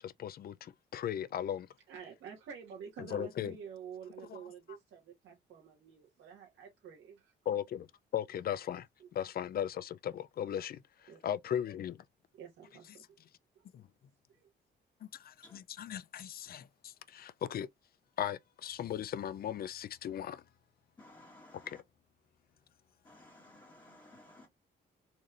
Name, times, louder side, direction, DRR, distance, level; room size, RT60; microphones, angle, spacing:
voice 1, 0.0-1.7 3.0-3.6 4.3-4.4 7.5-7.9 8.1-8.9 9.1-12.0 13.7-13.8 15.0-17.7 18.2-20.4 21.7-21.8, left 10 dB, 50° left, 0.4 m, -37 dB
voice 2, 1.9-7.3 9.0-9.1 11.1-11.2 12.3-13.0 13.8-13.9 14.3-14.5, right 7 dB, 80° right, 1.4 m, -49 dB
voice 3, 21.0-21.8 23.0-24.5, left 1 dB, 20° left, 1.3 m, -56 dB
4.2 x 3.2 x 2.4 m
cardioid pair, 90°, 20 cm